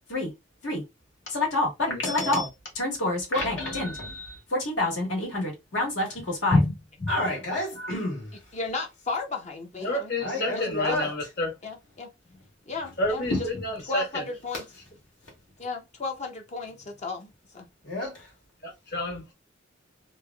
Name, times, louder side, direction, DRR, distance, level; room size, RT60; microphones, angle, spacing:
voice 1, 1.3-2.5 2.7-6.7 7.0-8.3 10.2-11.1 13.3-13.4 17.8-18.3, left 2 dB, 85° left, 1.6 m, -27 dB
voice 2, 2.0-2.5 9.8-11.5 13.0-14.2 18.9-19.3, left 1 dB, 60° left, 1.3 m, -30 dB
voice 3, 8.5-11.0 11.6-12.1 12.7-13.3 13.9-14.6 15.6-17.7, left 3 dB, 35° left, 0.5 m, -35 dB
3.2 x 2.4 x 2.2 m
head